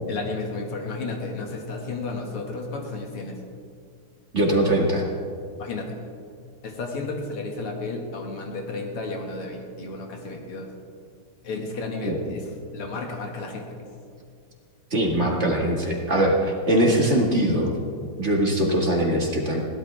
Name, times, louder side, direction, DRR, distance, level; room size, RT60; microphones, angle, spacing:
voice 1, 0.1-3.4 5.6-6.1 6.6-10.7 11.4-13.8, left 3 dB, 85° left, 1 dB, 2.8 m, -33 dB
voice 2, 4.3-5.0 12.0-12.2 14.9-17.7 18.2-19.6, right 1 dB, 35° right, -1 dB, 2.0 m, -21 dB
21.5 x 16.5 x 3.4 m, 2.2 s
omnidirectional pair, 2.4 m